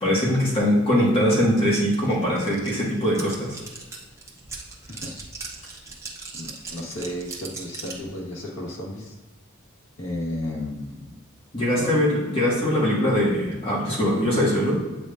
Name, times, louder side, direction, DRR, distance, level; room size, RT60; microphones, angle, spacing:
voice 1, 0.0-3.6 11.5-14.7, equal, 30° left, -5 dB, 1.6 m, -22 dB
sound 1, 1.3-1.4 1.6-8.1, right 4 dB, 15° right, 0.8 m, -39 dB
voice 2, 6.3-9.2 10.0-11.1 11.7-11.9, left 1 dB, 75° left, -2 dB, 1.5 m, -33 dB
8.6 x 5.0 x 2.6 m, 1.2 s
head